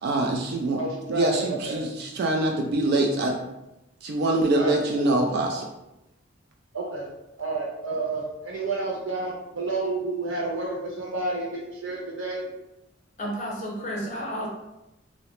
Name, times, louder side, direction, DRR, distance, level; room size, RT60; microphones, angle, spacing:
voice 1, 0.0-0.8 1.1-3.4 4.0-5.7, right 2 dB, 55° right, 1 dB, 0.3 m, -24 dB
voice 2, 0.8-1.8 4.6-5.2 6.7-7.1 7.4-12.5, right 3 dB, 85° right, -3 dB, 0.9 m, -30 dB
voice 3, 13.2-14.5, equal, 40° left, -3 dB, 0.7 m, -31 dB
2.8 x 2.0 x 3.0 m, 0.93 s
head